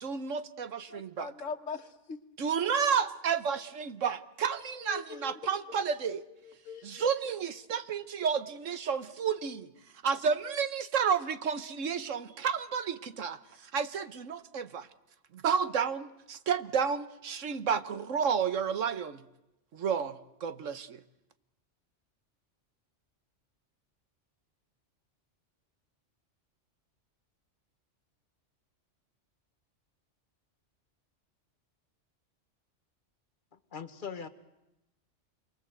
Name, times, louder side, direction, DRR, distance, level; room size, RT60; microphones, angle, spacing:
voice 1, 0.0-1.3 2.4-6.2 6.8-9.7 10.0-14.9 15.3-19.2 19.7-21.0, right 6 dB, 85° right, 1.5 m, -31 dB
voice 2, 0.9-2.2 4.9-5.3 6.1-7.1, left 4 dB, 90° left, 1.7 m, -42 dB
voice 3, 33.5-34.3, left 6 dB, 45° left, 1.5 m, -41 dB
27.5 x 23.5 x 8.0 m
omnidirectional pair, 1.3 m